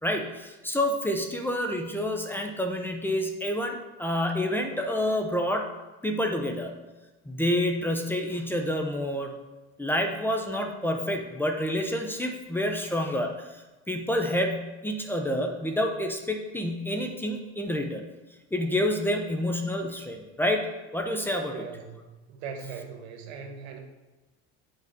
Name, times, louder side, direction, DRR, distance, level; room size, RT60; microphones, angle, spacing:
voice 1, 0.0-5.7 6.0-6.7 7.3-9.3 9.8-18.0 18.5-20.7 20.9-21.6, left 1 dB, 5° left, 3 dB, 0.8 m, -28 dB
voice 2, 21.5-23.8, right 6 dB, 80° right, 4 dB, 1.3 m, -40 dB
8.2 x 3.8 x 5.2 m, 1.2 s
supercardioid pair, 105°, 32 cm